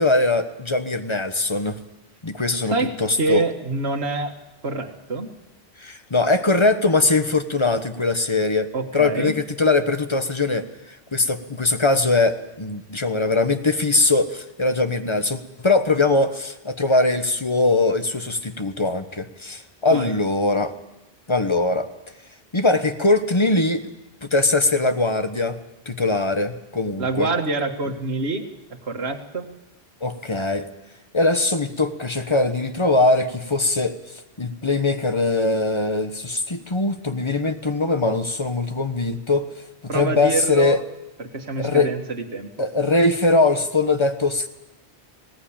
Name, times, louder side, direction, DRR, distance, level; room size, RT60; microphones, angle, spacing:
voice 1, 0.0-1.8 2.2-3.4 5.8-8.7 8.9-20.7 21.3-21.9 22.5-23.8 24.2-25.6 25.9-27.3 30.0-30.7 31.1-34.0 34.4-39.5 39.9-40.8 41.6-41.9 42.6-44.5, left 2 dB, 25° left, 8 dB, 1.2 m, -21 dB
voice 2, 2.6-4.4 4.6-5.3 8.7-9.4 19.9-20.1 27.0-28.5 28.8-29.5 39.9-40.8 41.2-42.5, right 3 dB, 70° right, 5 dB, 2.0 m, -26 dB
20.0 x 18.0 x 8.8 m, 0.99 s
omnidirectional pair, 1.1 m